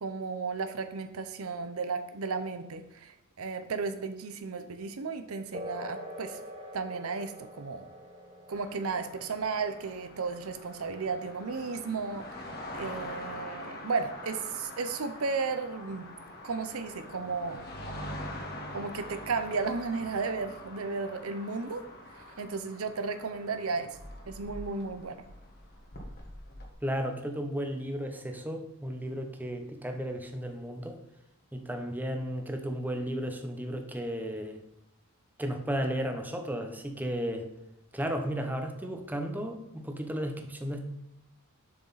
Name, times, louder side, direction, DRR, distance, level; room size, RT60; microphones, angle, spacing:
voice 1, 0.0-6.4 6.7-7.9 8.5-12.5 12.7-16.1 16.4-17.7 18.7-21.8 22.1-23.9 24.3-25.2, right 4 dB, 75° right, 9 dB, 0.7 m, -34 dB
sound 1, 5.5-13.5, left 1 dB, 40° right, 2.9 m, -47 dB
sound 2, 8.5-26.7, left 1 dB, 45° left, 1.4 m, -44 dB
voice 2, 26.8-31.0 31.5-34.6 35.4-37.5 37.9-40.8, equal, 10° right, 5 dB, 0.8 m, -34 dB
7.1 x 6.3 x 4.1 m, 0.90 s
head